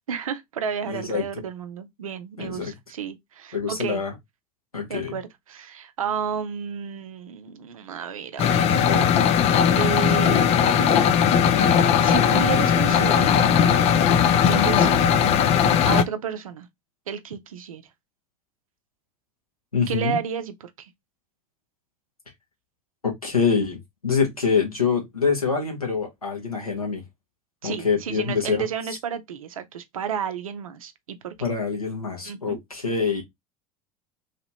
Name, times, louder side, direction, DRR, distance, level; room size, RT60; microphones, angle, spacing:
voice 1, 0.1-4.0 4.9-8.8 9.0-9.2 9.8-11.1 12.0-13.5 14.4-15.1 15.4-16.7 17.1-17.8 19.9-20.9 27.6-31.3 32.2-32.6, right 7 dB, 75° right, 0.6 m, -32 dB
voice 2, 0.8-1.2 2.4-2.7 3.5-4.1 4.7-5.2 8.7-9.2 14.5-14.9 19.7-20.2 23.0-27.0 27.6-28.6 31.4-33.2, left 5 dB, 85° left, 1.2 m, -25 dB
sound 1, 8.4-16.0, left 8 dB, 35° left, 0.4 m, -18 dB
3.2 x 2.9 x 2.8 m
figure-of-eight pair, 70°, 18 cm